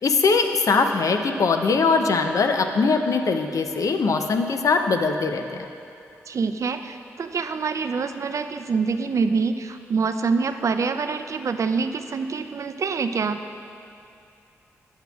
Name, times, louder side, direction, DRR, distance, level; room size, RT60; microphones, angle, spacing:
voice 1, 0.0-5.6, left 4 dB, 60° left, 6 dB, 0.5 m, -21 dB
voice 2, 6.3-13.4, right 5 dB, 55° right, 9 dB, 0.4 m, -25 dB
10.0 x 7.9 x 2.3 m, 2.6 s
supercardioid pair, 40°, 6 cm